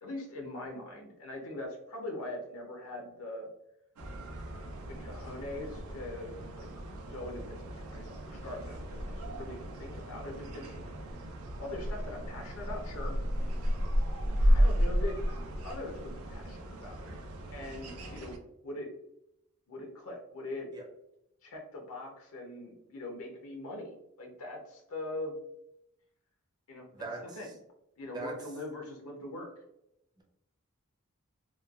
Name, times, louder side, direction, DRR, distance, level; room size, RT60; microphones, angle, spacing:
voice 1, 0.0-3.5 5.0-6.7 7.1-10.7 11.6-13.2 14.5-15.2 15.6-17.1 17.5-18.9 19.7-20.7 21.4-25.4 26.7-27.5 28.0-29.5, left 1 dB, 75° left, 1 dB, 0.6 m, -42 dB
sound 1, 4.0-18.4, equal, 85° right, 0.5 m, -33 dB
voice 2, 26.9-27.5 28.1-28.4, right 2 dB, 20° right, -1 dB, 0.5 m, -40 dB
3.0 x 2.2 x 2.3 m, 0.83 s
head